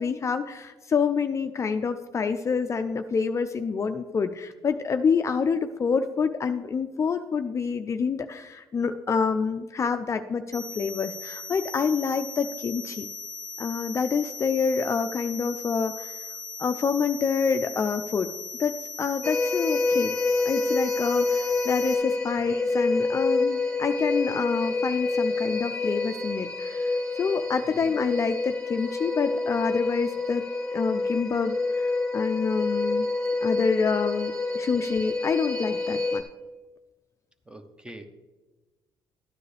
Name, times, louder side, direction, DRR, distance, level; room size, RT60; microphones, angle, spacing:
voice 1, 0.0-13.1 13.6-16.1 16.6-18.3 18.6-20.1 20.4-33.1 33.4-36.2, left 5 dB, 35° left, 8 dB, 0.5 m, -27 dB
sound 1, 10.5-21.9, left 3 dB, 40° right, 1.5 m, -38 dB
sound 2, 19.2-36.2, left 3 dB, 5° left, 1.4 m, -27 dB
voice 2, 37.5-38.1, right 1 dB, 10° right, 8 dB, 1.0 m, -45 dB
13.0 x 9.5 x 3.4 m, 1.2 s
cardioid pair, 100°, 9 cm